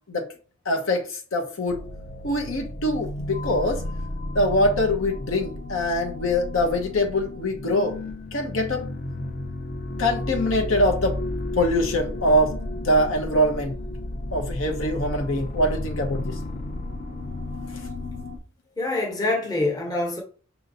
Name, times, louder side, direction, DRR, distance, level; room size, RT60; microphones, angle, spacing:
voice 1, 0.7-1.1 1.3-1.8 2.2-3.8 4.3-8.0 8.3-8.8 10.0-11.2 11.6-13.7 14.3-16.3, left 1 dB, 75° left, 0.8 m, -23 dB
sound 1, 1.7-18.4, left 1 dB, 40° left, 0.5 m, -33 dB
voice 2, 18.8-20.2, left 2 dB, 20° left, 1.1 m, -25 dB
5.3 x 2.7 x 2.7 m
head